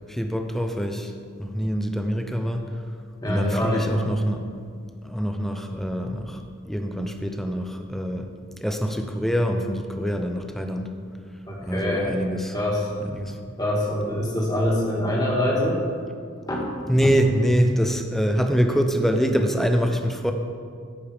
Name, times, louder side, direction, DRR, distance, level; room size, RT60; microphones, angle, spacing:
voice 1, 0.1-1.1 1.4-2.9 3.2-4.5 5.0-8.3 8.6-10.9 11.6-12.6 13.0-13.4 16.9-20.3, equal, ahead, 5 dB, 0.6 m, -25 dB
voice 2, 3.2-3.8 11.5-12.1 12.5-12.8 13.6-15.8 16.5-16.7, left 1 dB, 20° left, -3 dB, 1.9 m, -24 dB
14.5 x 5.3 x 5.0 m, 2.2 s
head